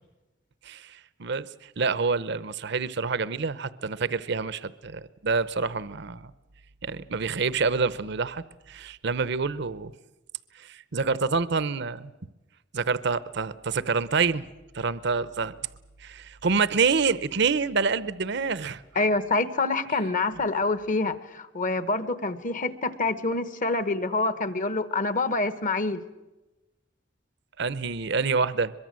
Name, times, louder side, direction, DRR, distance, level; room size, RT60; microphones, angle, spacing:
voice 1, 0.6-6.3 6.8-9.9 10.6-12.1 12.7-14.5 14.7-15.5 16.0-18.8 27.6-28.7, right 4 dB, 60° right, 16 dB, 0.8 m, -27 dB
voice 2, 18.9-26.0, left 3 dB, 45° left, 13 dB, 1.3 m, -26 dB
23.5 x 22.5 x 7.6 m, 1.1 s
head